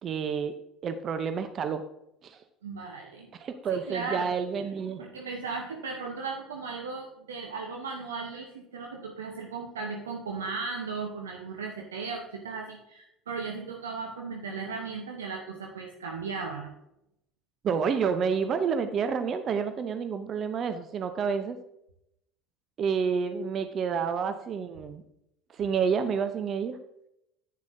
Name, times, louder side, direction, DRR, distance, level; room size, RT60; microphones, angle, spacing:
voice 1, 0.0-0.5 0.8-1.8 2.2-2.4 3.3-5.0 17.6-21.6 22.8-25.0 25.5-26.8, right 6 dB, 45° right, 10 dB, 0.7 m, -29 dB
voice 2, 2.6-3.3 3.7-4.3 5.0-16.7, right 4 dB, 80° right, 2 dB, 0.9 m, -36 dB
10.5 x 9.5 x 2.7 m, 0.82 s
figure-of-eight pair, 60°, 0 cm